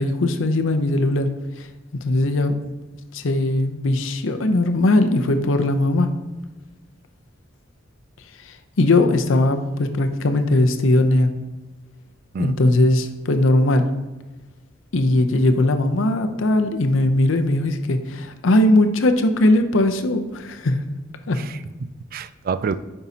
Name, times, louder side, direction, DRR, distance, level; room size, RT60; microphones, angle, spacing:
voice 1, 0.0-1.3 1.6-1.7 2.0-2.5 3.1-6.1 8.5-11.3 12.4-13.9 14.9-20.8 21.3-21.4, left 2 dB, 85° left, 7 dB, 0.6 m, -19 dB
voice 2, 21.4-22.8, right 5 dB, 50° right, 13 dB, 0.3 m, -28 dB
9.0 x 5.5 x 2.8 m, 1.2 s
head